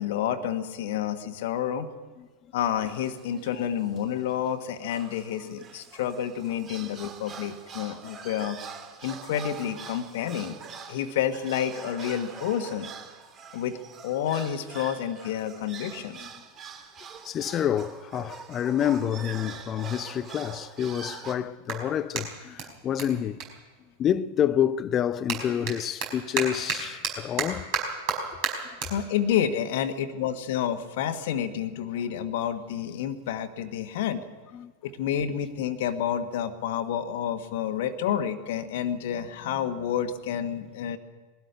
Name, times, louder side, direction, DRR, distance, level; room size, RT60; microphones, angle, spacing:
voice 1, 0.0-1.9 2.5-8.6 9.0-10.6 10.9-12.9 13.5-13.8 14.0-16.2 28.9-34.3 34.8-41.0, left 9 dB, 55° left, 1.4 m, -29 dB
sound 1, 2.8-3.7 4.0-4.1 4.3-4.5 4.9-21.3, right 6 dB, 30° right, 2.5 m, -44 dB
voice 2, 17.2-23.4 24.0-27.7 34.5-34.7, left 10 dB, 30° left, 0.7 m, -28 dB
Clapping, 21.6-24.4 24.7-31.3, right 7 dB, 45° right, 5.0 m, -35 dB
21.0 x 13.0 x 9.8 m
figure-of-eight pair, 90°, 0 cm